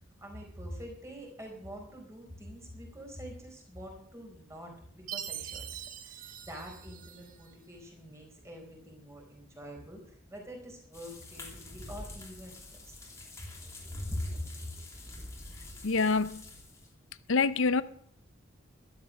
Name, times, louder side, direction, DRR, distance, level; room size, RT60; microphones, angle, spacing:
voice 1, 0.2-5.6 6.0-12.9 13.9-14.4, equal, 15° right, 4.4 m, -44 dB
Chime, 5.1-7.5, right 10 dB, 40° right, 1.4 m, -42 dB
Rain Thunder & Water (Stereo), 10.9-16.9, left 1 dB, 15° left, 3.0 m, -46 dB
voice 2, 15.8-16.4 17.3-17.8, left 4 dB, 75° left, 0.6 m, -26 dB
13.5 x 12.5 x 6.5 m
head